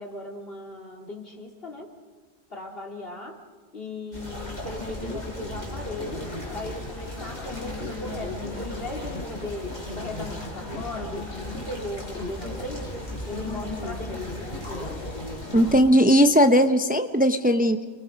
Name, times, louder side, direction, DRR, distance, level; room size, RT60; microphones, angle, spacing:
voice 1, 0.0-1.9 2.5-3.4 3.7-15.0, left 2 dB, 65° left, 1 dB, 3.1 m, -38 dB
sound 1, 4.1-15.8, left 1 dB, 45° left, 6.3 m, -35 dB
voice 2, 15.5-17.8, equal, 10° right, 8 dB, 0.7 m, -18 dB
29.5 x 23.5 x 5.2 m, 1.4 s
omnidirectional pair, 1.0 m